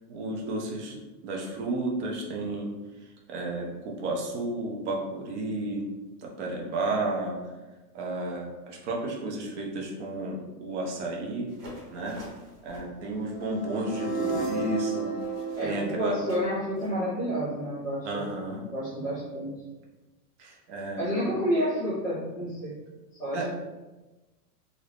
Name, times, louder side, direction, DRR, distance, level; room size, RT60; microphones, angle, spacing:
voice 1, 0.1-2.7 3.3-5.8 6.2-7.4 7.9-11.5 11.9-12.2 12.6-15.1 15.6-16.2 18.0-18.6 20.4-21.4 23.3-23.5, right 2 dB, 50° right, -1 dB, 0.7 m, -32 dB
sound 1, 11.5-17.0, right 1 dB, 85° right, 1.4 m, -51 dB
sound 2, 13.3-17.3, right 3 dB, 35° left, 0.5 m, -33 dB
voice 2, 15.5-18.3 18.7-19.6 21.0-22.7 23.1-23.5, equal, 10° left, -11 dB, 1.1 m, -30 dB
2.6 x 2.6 x 3.4 m, 1.1 s
supercardioid pair, 170°, 46 cm